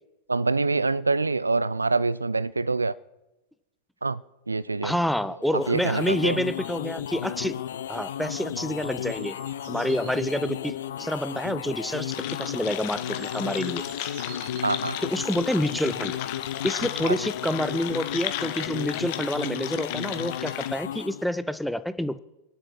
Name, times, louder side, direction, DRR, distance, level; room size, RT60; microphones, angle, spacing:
voice 1, 0.3-3.0 4.0-5.0 5.5-6.4 14.6-15.0 17.0-17.2, right 3 dB, 80° right, 0.5 m, -25 dB
voice 2, 4.8-7.6 7.9-9.4 9.7-12.1 12.4-13.8 15.1-16.1 16.6-22.2, equal, ahead, 0.7 m, -28 dB
sound 1, 5.4-21.3, left 10 dB, 60° left, 0.8 m, -34 dB
sound 2, 6.5-6.7 8.6-10.5 12.5-12.6 13.0-15.0 16.1-16.2, right 5 dB, 55° right, 3.3 m, -48 dB
sound 3, 12.1-20.7, left 13 dB, 45° left, 1.4 m, -35 dB
29.0 x 11.0 x 4.3 m
figure-of-eight pair, 90°, 0 cm